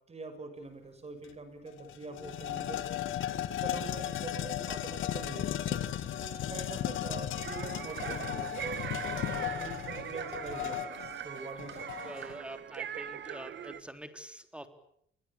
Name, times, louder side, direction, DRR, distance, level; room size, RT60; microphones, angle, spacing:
voice 1, 0.1-2.8 3.3-5.8 6.3-8.8 9.3-11.9, right 3 dB, 30° right, 8 dB, 6.6 m, -44 dB
sound 1, 1.2-1.3 1.7-12.4, left 12 dB, 80° left, 1.9 m, -36 dB
sound 2, 2.1-10.8 11.1-11.3, left 3 dB, 40° left, 6.3 m, -57 dB
sound 3, 7.4-13.8, right 9 dB, 65° right, 1.5 m, -41 dB
voice 2, 12.0-14.7, right 1 dB, 5° right, 8 dB, 3.7 m, -45 dB
27.5 x 22.5 x 8.8 m, 0.70 s
cardioid pair, 90°, 20 cm